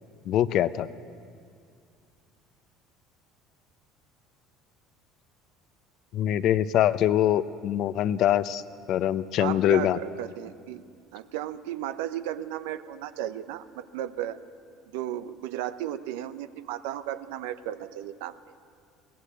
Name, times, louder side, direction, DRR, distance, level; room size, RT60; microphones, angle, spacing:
voice 1, 0.3-0.9 6.1-8.6 8.9-10.0, left 11 dB, 60° left, 14 dB, 0.7 m, -23 dB
voice 2, 9.4-10.8 11.1-14.4 14.9-18.3, right 12 dB, 90° right, 11 dB, 0.8 m, -34 dB
22.5 x 18.0 x 8.2 m, 2.2 s
supercardioid pair, 115°, 0 cm